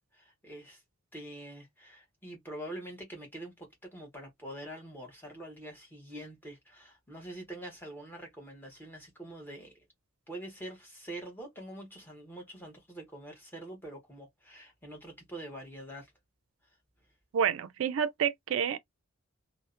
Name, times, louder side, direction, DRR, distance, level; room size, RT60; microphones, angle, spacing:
voice 1, 0.1-0.8 1.1-9.8 10.3-16.1, right 1 dB, 10° left, 0.9 m, -45 dB
voice 2, 17.3-18.8, right 8 dB, 65° right, 0.3 m, -29 dB
2.5 x 2.1 x 2.4 m
head